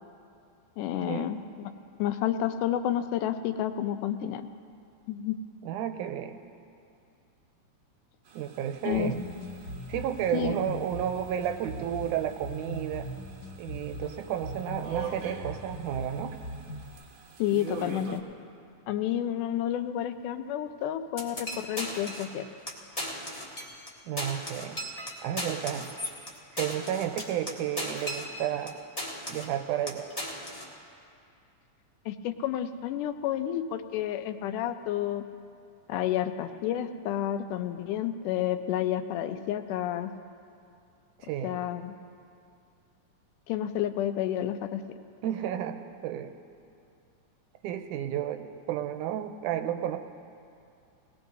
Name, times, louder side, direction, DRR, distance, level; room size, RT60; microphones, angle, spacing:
voice 1, 0.8-1.7 2.0-4.5 5.1-5.4 8.9-9.1 10.3-10.5 17.4-18.2 18.9-22.5 32.1-35.3 35.9-40.1 41.4-41.9 43.5-44.8, left 11 dB, 85° left, 9 dB, 2.2 m, -30 dB
voice 2, 5.6-6.4 8.3-9.2 9.9-13.1 13.6-16.4 24.1-24.8 25.2-25.9 26.5-28.8 29.3-30.1 41.2-41.6 45.2-46.4 47.6-50.0, right 10 dB, 85° right, 7 dB, 2.1 m, -32 dB
sound 1, 8.2-18.2, right 7 dB, 70° right, 1.1 m, -45 dB
sound 2, 8.9-16.9, equal, 55° left, 2.1 m, -40 dB
sound 3, 21.2-22.4 22.7-22.8 23.0-23.9 24.2-28.7 29.0-29.6 29.9-30.7, left 1 dB, 30° left, 0.6 m, -36 dB
20.0 x 19.0 x 2.7 m, 2.5 s
omnidirectional pair, 3.6 m